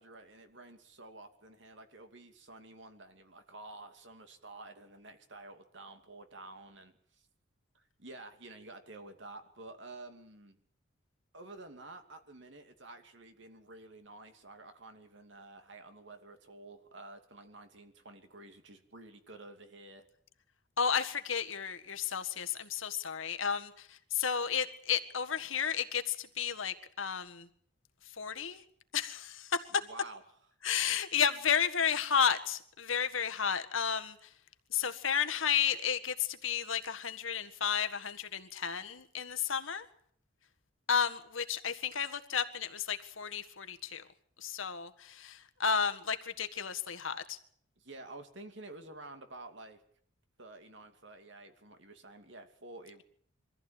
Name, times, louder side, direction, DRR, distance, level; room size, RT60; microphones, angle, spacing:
voice 1, 0.0-7.3 7.7-10.6 11.3-20.1 29.8-30.2 47.8-49.8 50.4-53.0, right 2 dB, 65° right, 7 dB, 2.7 m, -50 dB
voice 2, 20.8-27.5 28.2-28.6 28.9-29.6 30.6-34.2 34.7-39.8 40.9-44.0 44.4-47.4, left 7 dB, 80° left, 8 dB, 1.6 m, -32 dB
23.5 x 15.0 x 9.0 m, 0.63 s
head